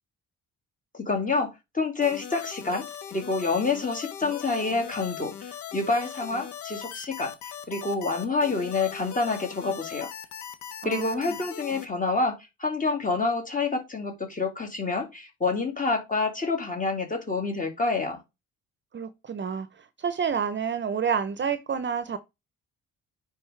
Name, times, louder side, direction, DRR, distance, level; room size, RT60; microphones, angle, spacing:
voice 1, 0.9-7.3 7.7-10.1 10.8-18.2, left 3 dB, 25° left, 2.3 m, -28 dB
sound 1, 2.0-11.9, left 9 dB, 75° left, 1.1 m, -40 dB
voice 2, 10.8-11.4 18.9-22.2, right 7 dB, 40° right, 0.7 m, -29 dB
9.6 x 4.0 x 3.3 m
cardioid pair, 90°, 30 cm